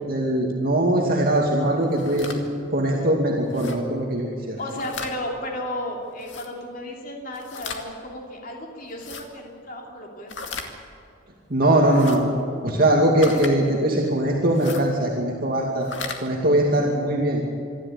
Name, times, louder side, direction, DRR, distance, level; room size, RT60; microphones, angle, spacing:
voice 1, 0.1-2.3 2.7-4.6 11.5-12.2 12.6-15.9 16.2-17.4, right 1 dB, 50° right, -2 dB, 2.5 m, -21 dB
sound 1, 1.8-2.4 3.5-3.8 4.6-5.1 6.2-6.5 7.3-7.8 8.9-9.2 10.3-10.7 11.8-12.2 13.2-13.5 14.5-14.8 15.7-16.2, left 5 dB, 65° left, 2.2 m, -36 dB
voice 2, 4.6-10.7, left 1 dB, 45° left, 0 dB, 3.0 m, -34 dB
26.0 x 12.0 x 8.6 m, 2.6 s
head